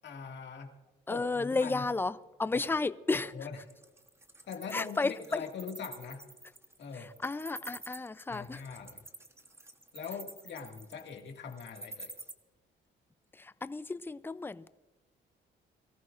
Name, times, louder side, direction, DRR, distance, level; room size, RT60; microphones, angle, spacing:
voice 1, 0.0-0.7 1.1-1.9 3.3-3.6 4.5-6.3 6.8-7.1 8.3-9.0 9.9-12.1, left 6 dB, 60° left, 2.1 m, -42 dB
voice 2, 1.1-3.3 4.7-5.4 6.9-8.6 13.3-14.7, left 3 dB, 10° left, 0.5 m, -33 dB
Wild animals, 3.7-12.3, right 2 dB, 15° right, 1.1 m, -47 dB
23.0 x 14.0 x 2.5 m
cardioid pair, 90°, 20 cm